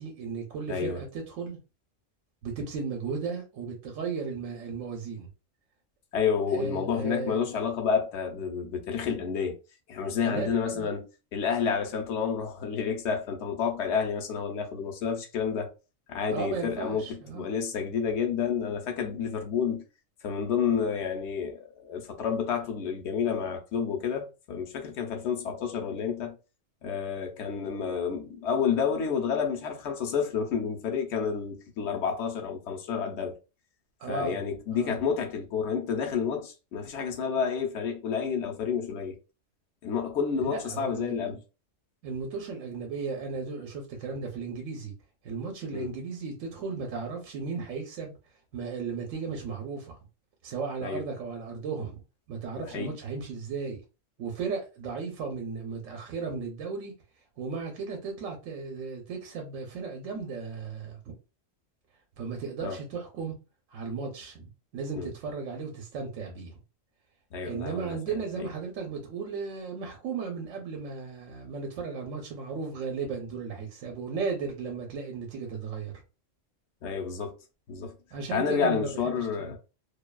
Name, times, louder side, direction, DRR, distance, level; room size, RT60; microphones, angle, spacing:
voice 1, 0.0-1.6 2.4-5.3 6.5-7.5 10.3-10.9 16.3-17.5 34.0-34.4 34.7-34.9 40.4-41.3 42.0-44.9 45.2-48.1 48.5-50.0 50.4-52.0 52.3-53.8 54.2-56.9 57.4-61.0 62.2-63.3 63.7-66.5 67.4-75.9 78.1-78.9 79.2-79.3, right 5 dB, 80° right, 1.0 m, -35 dB
voice 2, 0.7-1.0 6.1-9.6 9.9-11.1 11.3-15.7 16.1-19.8 20.2-26.3 26.8-33.4 34.1-39.2 39.8-41.4 45.7-45.9 50.8-51.0 52.6-52.9 62.6-62.8 65.0-65.1 67.3-68.0 76.8-77.3 77.7-77.9 78.3-79.6, left 6 dB, 65° left, 0.9 m, -30 dB
2.6 x 2.3 x 2.2 m
omnidirectional pair, 1.3 m